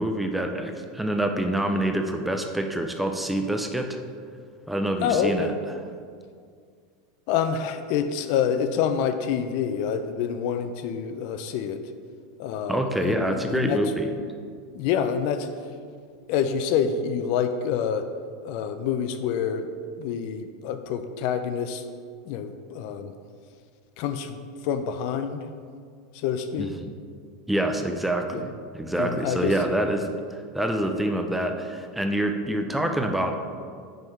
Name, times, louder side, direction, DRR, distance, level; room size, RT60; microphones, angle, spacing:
voice 1, 0.0-4.0 4.7-5.5 12.7-14.1 26.6-26.9 27.5-30.1 30.5-33.4, right 1 dB, 5° right, 5 dB, 0.5 m, -26 dB
voice 2, 5.0-5.6 7.3-11.8 12.4-13.8 14.7-15.5 16.3-18.1 18.4-19.7 20.0-21.8 22.3-23.1 24.0-24.4 24.6-25.4 26.1-26.7 28.3-28.4 28.9-29.5, left 7 dB, 60° left, 9 dB, 0.4 m, -27 dB
6.2 x 4.6 x 4.5 m, 2.1 s
supercardioid pair, 135°, 2 cm